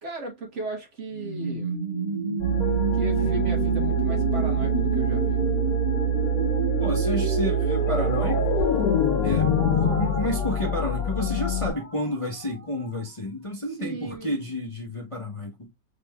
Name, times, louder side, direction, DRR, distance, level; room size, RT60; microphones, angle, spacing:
voice 1, 0.0-1.8 2.9-5.5 13.8-14.5, right 3 dB, 50° right, 1.2 m, -36 dB
sound 1, 1.1-12.9, right 1 dB, 70° right, 2.6 m, -30 dB
sound 2, 2.4-11.7, right 4 dB, 70° left, 1.5 m, -26 dB
voice 2, 6.8-8.6 9.2-15.7, left 1 dB, 25° left, 0.7 m, -30 dB
sound 3, 7.7-10.9 11.2-11.6, left 8 dB, 90° left, 1.1 m, -26 dB
5.1 x 3.4 x 2.2 m
omnidirectional pair, 1.7 m